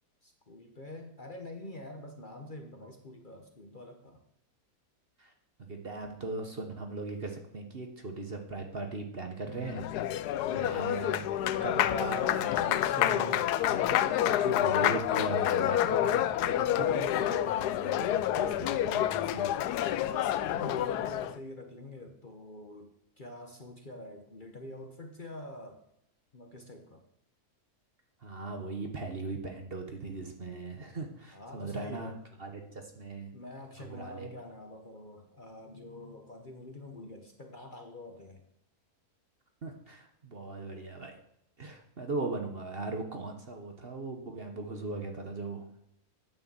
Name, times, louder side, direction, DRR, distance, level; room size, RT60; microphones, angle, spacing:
voice 1, 0.2-4.2 10.3-10.5 20.0-25.8 26.3-27.0 31.3-32.2 33.3-38.4, left 1 dB, 35° left, 4 dB, 1.1 m, -46 dB
voice 2, 5.6-19.5 28.2-32.1 32.4-33.3 33.8-34.3 39.6-41.1 41.6-45.6, right 3 dB, 40° right, 4 dB, 1.2 m, -39 dB
Applause, 9.5-21.4, left 12 dB, 85° left, 1.1 m, -28 dB
9.1 x 6.7 x 7.5 m, 0.75 s
omnidirectional pair, 1.7 m